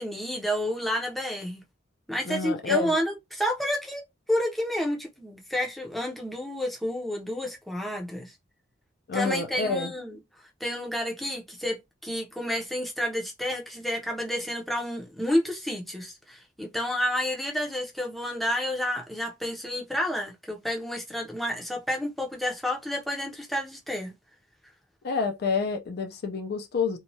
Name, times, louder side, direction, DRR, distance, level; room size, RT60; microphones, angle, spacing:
voice 1, 0.0-1.6 2.1-4.0 4.3-8.3 9.1-10.2 10.6-11.8 12.0-24.1, equal, ahead, 0.5 m, -30 dB
voice 2, 2.2-2.9 9.1-9.9 25.0-27.0, left 4 dB, 55° left, 0.4 m, -28 dB
3.0 x 2.2 x 2.6 m
head